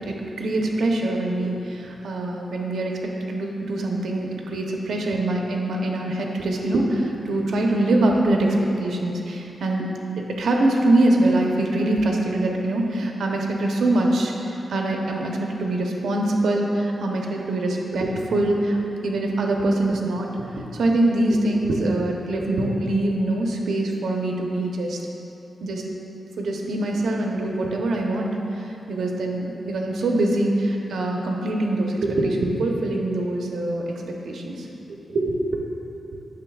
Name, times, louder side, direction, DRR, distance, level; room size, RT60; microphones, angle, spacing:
voice 1, 0.0-9.9 10.2-18.8 19.0-20.3 20.7-25.0 25.6-25.8 26.4-28.3 28.9-34.7 35.1-35.6, right 1 dB, 85° right, 0 dB, 0.8 m, -23 dB
9.4 x 6.5 x 2.3 m, 2.8 s
wide cardioid pair, 150°, 0 cm